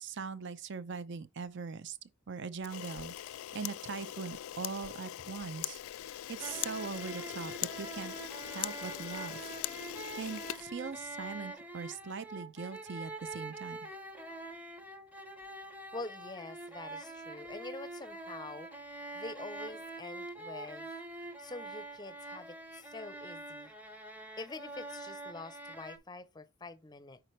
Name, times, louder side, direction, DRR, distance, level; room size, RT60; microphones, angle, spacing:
voice 1, 0.0-2.0 2.3-9.5 10.2-13.8, right 5 dB, 55° right, 0.6 m, -41 dB
Camera, 2.6-11.3, left 13 dB, 75° left, 0.3 m, -41 dB
sound 1, 6.4-26.0, right 2 dB, 10° right, 0.8 m, -45 dB
voice 2, 15.6-23.7 24.4-27.2, left 3 dB, 20° left, 0.6 m, -46 dB
8.8 x 5.0 x 3.2 m
head